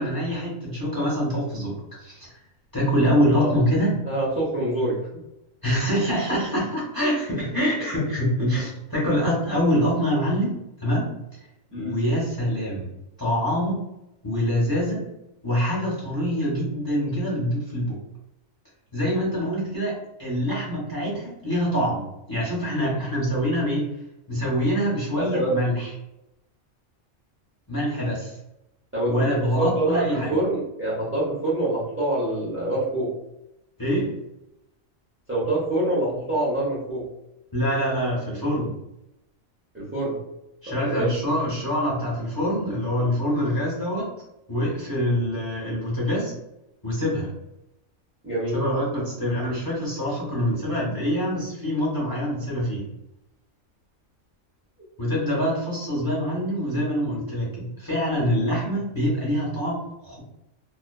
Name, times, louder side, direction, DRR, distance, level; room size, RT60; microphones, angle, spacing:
voice 1, 0.0-2.4 2.7-3.9 5.6-11.1 11.8-12.9 13.2-13.8 14.2-15.0 15.4-18.0 18.9-22.0 22.3-23.8 24.3-25.9 27.7-28.4 29.1-30.3 33.8-34.1 37.5-38.7 40.6-44.1 44.5-46.3 46.8-47.3 48.5-52.8 55.0-60.2, equal, 20° left, -7 dB, 0.6 m, -25 dB
voice 2, 4.1-5.0 11.7-12.0 25.1-25.5 28.9-33.1 35.3-37.0 39.7-40.2 40.7-41.1 48.2-48.6, right 1 dB, 20° right, -7 dB, 0.4 m, -26 dB
2.4 x 2.3 x 2.2 m, 0.87 s
omnidirectional pair, 1.4 m